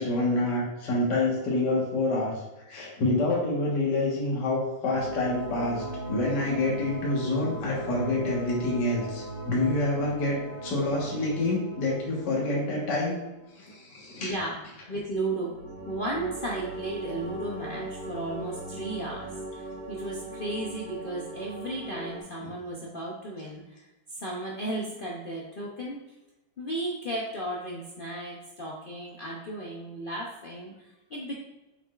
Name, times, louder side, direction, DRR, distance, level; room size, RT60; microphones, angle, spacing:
voice 1, 0.0-13.2 13.5-14.3 22.4-22.5, left 2 dB, 60° left, -4 dB, 2.0 m, -27 dB
sound 1, 4.9-13.9 15.1-22.2, right 1 dB, 75° right, 2.3 m, -38 dB
voice 2, 14.2-14.6 14.9-15.5 15.9-26.0 26.6-31.3, right 1 dB, 80° left, -3 dB, 0.4 m, -34 dB
6.9 x 5.9 x 2.4 m, 1.0 s
omnidirectional pair, 2.1 m